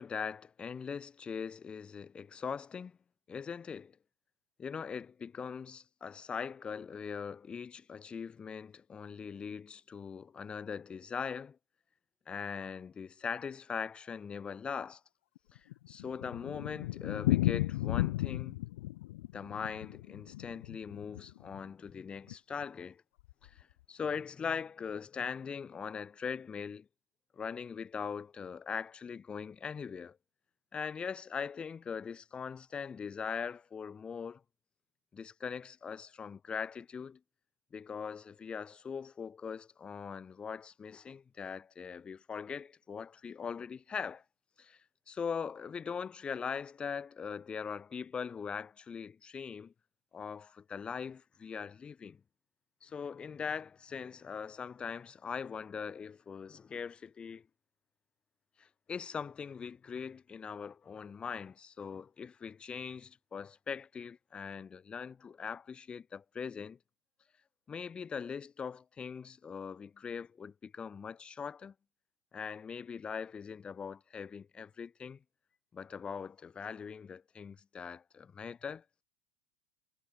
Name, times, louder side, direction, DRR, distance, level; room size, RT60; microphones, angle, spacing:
voice 1, 0.0-3.0 3.3-4.0 4.6-11.6 12.3-15.0 15.9-18.6 19.3-23.0 23.4-26.9 27.3-30.2 30.7-34.4 35.1-37.2 37.7-44.2 44.6-44.8 45.1-49.7 50.1-52.2 52.8-57.4 58.6-66.8 67.7-71.7 72.3-75.2 75.7-78.8, left 6 dB, 15° left, 0.9 m, -41 dB
Thunder, 15.4-21.6 21.9-22.0 22.3-22.4 22.6-22.7 23.3-23.6, left 17 dB, 65° left, 1.6 m, -34 dB
supercardioid pair, 165°, 8 cm